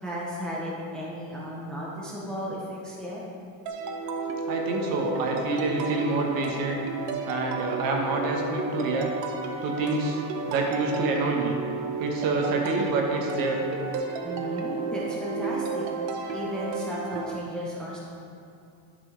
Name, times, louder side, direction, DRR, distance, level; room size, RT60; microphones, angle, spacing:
voice 1, 0.0-3.2 14.2-15.9 16.3-18.0, equal, ahead, -6 dB, 0.7 m, -34 dB
sound 1, 3.7-17.4, right 4 dB, 70° right, 0.9 m, -33 dB
voice 2, 4.5-6.8 7.3-9.1 9.6-10.2 10.5-11.6 12.0-13.6, right 3 dB, 50° right, 1 dB, 1.2 m, -27 dB
11.0 x 6.0 x 3.3 m, 2.5 s
cardioid pair, 170°, 45 cm